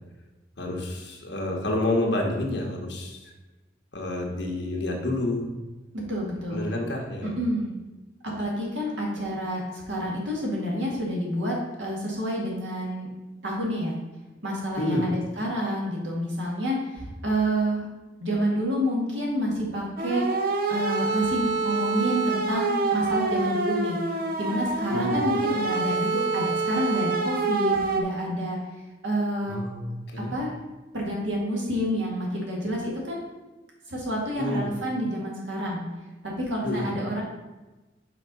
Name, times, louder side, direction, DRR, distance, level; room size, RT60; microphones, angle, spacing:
voice 1, 0.6-3.3 3.9-5.5 6.5-7.4 14.8-15.1 24.9-25.2 29.5-30.4 34.4-34.7 36.6-36.9, left 1 dB, 65° left, 0 dB, 1.5 m, -29 dB
voice 2, 6.1-6.6 7.2-7.7 8.2-13.1 13.4-14.0 14.4-17.9 18.2-20.2 20.7-24.0 24.4-28.6 29.0-29.6 30.3-30.5 30.9-33.3 33.9-35.8 36.2-37.2, equal, 90° right, -2 dB, 2.2 m, -28 dB
sound 1, 20.0-28.0, right 3 dB, 55° right, 0.8 m, -26 dB
5.8 x 4.7 x 5.5 m, 1.1 s
head